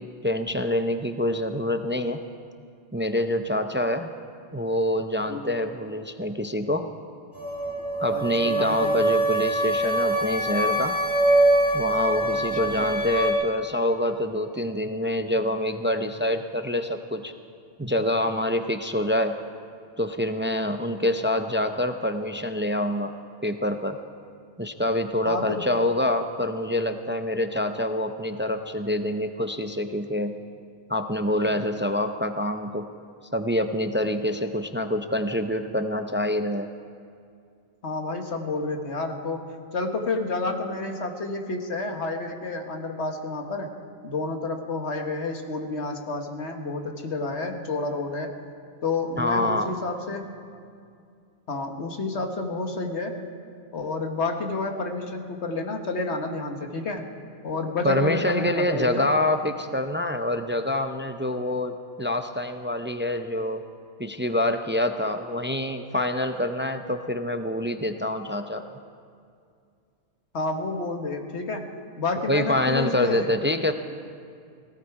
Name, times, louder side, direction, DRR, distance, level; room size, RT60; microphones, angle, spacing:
voice 1, 0.0-2.2 2.9-4.1 4.5-6.9 8.0-11.0 11.7-17.3 17.8-19.4 20.0-23.1 23.4-24.0 24.6-30.3 30.9-32.9 33.3-36.7 49.2-49.7 57.8-63.6 64.0-68.8 72.3-73.7, left 1 dB, 15° right, 7 dB, 0.4 m, -26 dB
sound 1, 7.3-13.3, right 1 dB, 20° left, 3.7 m, -23 dB
voice 2, 8.1-9.0 12.3-12.8 25.3-25.6 37.8-39.4 39.7-43.7 44.0-48.3 48.8-50.3 51.5-53.2 53.7-57.0 57.4-59.1 70.3-71.7 72.0-73.3, left 3 dB, 80° left, 4 dB, 1.7 m, -30 dB
17.0 x 17.0 x 4.8 m, 2.3 s
omnidirectional pair, 1.1 m